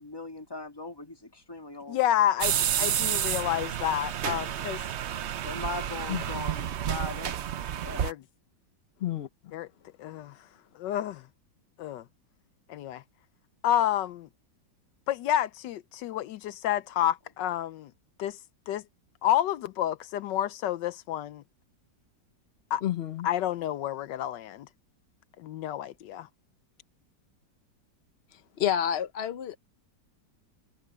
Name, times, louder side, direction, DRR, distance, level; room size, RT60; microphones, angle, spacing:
voice 1, 0.0-2.0 5.4-7.4 7.7-8.0, left 2 dB, 15° left, 1.8 m, -39 dB
voice 2, 1.9-4.8 8.0-8.2 9.5-9.7 10.0-10.3 10.8-11.2 11.8-12.0 12.7-13.0 13.6-14.3 15.1-17.9 18.2-18.4 18.7-18.8 19.2-21.4 22.7-22.8 23.2-24.7 25.4-26.3, left 11 dB, 80° left, 1.3 m, -29 dB
sound 1, 2.4-8.1, right 10 dB, 65° right, 0.6 m, -30 dB
voice 3, 22.8-23.3 28.6-29.6, left 10 dB, 60° left, 0.6 m, -29 dB
omnidirectional pair, 1.9 m